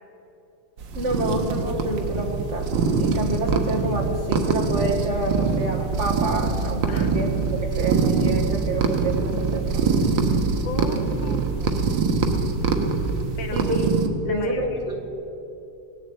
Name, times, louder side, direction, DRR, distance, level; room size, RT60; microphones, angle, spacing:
sound 1, 0.8-14.1, right 4 dB, 85° right, 1.8 m, -24 dB
voice 1, 0.9-9.8 13.5-13.8 14.2-15.0, right 1 dB, 40° right, 1 dB, 1.6 m, -28 dB
voice 2, 10.6-12.0 13.4-13.9 14.2-14.8, left 4 dB, 85° left, 6 dB, 1.9 m, -36 dB
17.5 x 7.9 x 8.5 m, 2.9 s
omnidirectional pair, 2.0 m